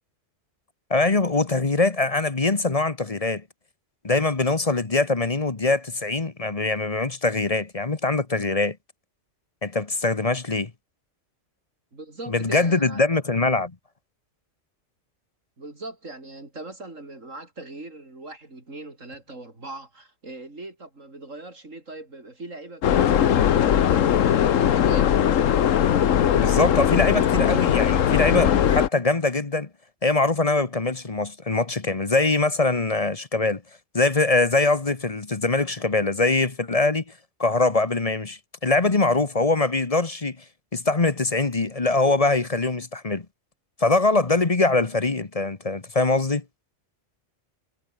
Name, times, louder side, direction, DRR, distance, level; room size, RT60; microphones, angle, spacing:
voice 1, 0.9-3.4 4.0-8.8 9.6-10.7 12.3-13.7 26.3-29.7 30.0-33.6 33.9-37.0 37.4-40.4 40.7-43.3 43.8-46.4, left 3 dB, 30° left, 1.2 m, -23 dB
voice 2, 11.9-13.0 15.6-25.2, right 2 dB, 85° right, 5.5 m, -40 dB
sound 1, 22.8-28.9, left 9 dB, 90° left, 1.3 m, -19 dB
omnidirectional pair, 1.3 m